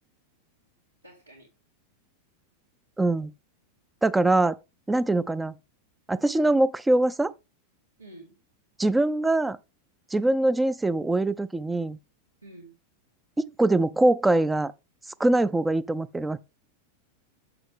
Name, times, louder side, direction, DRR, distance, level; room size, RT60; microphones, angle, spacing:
voice 1, 1.0-1.5 8.0-8.4 12.4-12.7, right 1 dB, 85° right, 2.1 m, -48 dB
voice 2, 3.0-3.3 4.0-4.6 4.9-5.5 6.1-7.3 8.8-9.6 10.1-12.0 13.4-14.7 15.2-16.4, right 2 dB, 10° right, 0.4 m, -23 dB
7.0 x 6.8 x 3.5 m
figure-of-eight pair, 90°, 0 cm